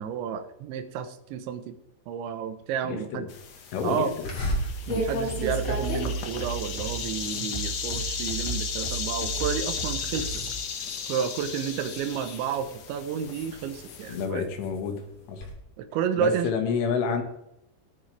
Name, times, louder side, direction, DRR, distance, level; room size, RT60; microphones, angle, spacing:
voice 1, 0.0-1.8 2.1-3.3 3.8-4.1 4.9-10.4 11.1-14.5 15.8-16.5, right 7 dB, 80° right, 9 dB, 3.4 m, -31 dB
voice 2, 2.8-3.3 3.7-4.1 14.1-15.0 15.3-15.4 16.2-17.2, left 5 dB, 90° left, 5 dB, 4.3 m, -28 dB
sound 1, 3.3-14.3, left 6 dB, 65° left, 1.7 m, -35 dB
sound 2, 4.2-9.6 10.0-10.4 10.8-12.8 13.3-15.5, left 1 dB, 35° left, 2.8 m, -35 dB
sound 3, 4.5-10.5, right 5 dB, 15° right, 4.9 m, -35 dB
20.5 x 9.4 x 3.4 m, 0.82 s
omnidirectional pair, 5.4 m